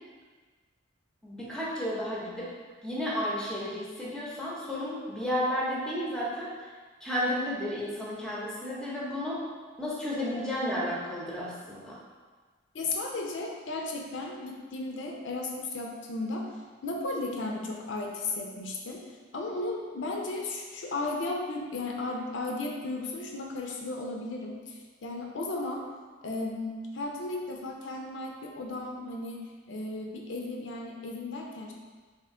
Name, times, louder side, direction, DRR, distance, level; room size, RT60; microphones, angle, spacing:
voice 1, 1.2-2.5 2.8-6.7 7.0-9.4 9.8-12.0, equal, 5° left, -6 dB, 0.7 m, -32 dB
voice 2, 12.7-16.5 16.8-19.0 19.3-25.8 26.2-31.7, left 2 dB, 70° left, 0 dB, 0.5 m, -35 dB
3.5 x 2.6 x 3.6 m, 1.4 s
head